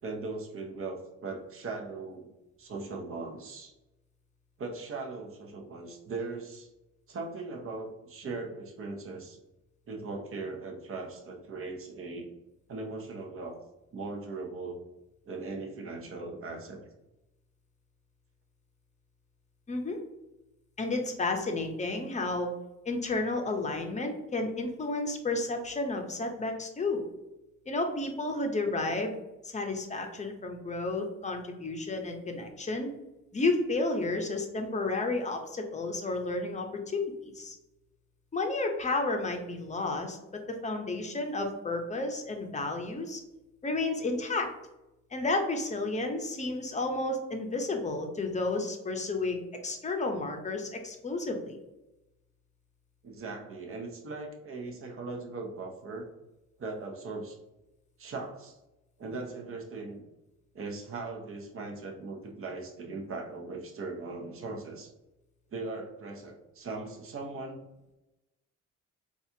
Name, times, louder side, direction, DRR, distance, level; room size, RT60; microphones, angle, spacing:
voice 1, 0.0-2.3 2.6-3.7 4.6-6.7 7.1-9.4 9.9-12.3 12.7-13.6 13.9-14.8 15.2-16.9 53.0-56.1 56.6-57.4 58.0-58.6 59.0-60.0 60.5-64.9 65.5-67.6, right 3 dB, 45° right, 2 dB, 0.8 m, -39 dB
voice 2, 19.7-20.0 20.8-22.5 22.9-27.0 27.7-29.1 29.4-32.9 33.3-37.5 38.3-43.2 43.6-44.5 45.1-51.6, left 2 dB, 25° left, 3 dB, 0.7 m, -32 dB
4.1 x 2.4 x 2.7 m, 0.97 s
cardioid pair, 90°, 30 cm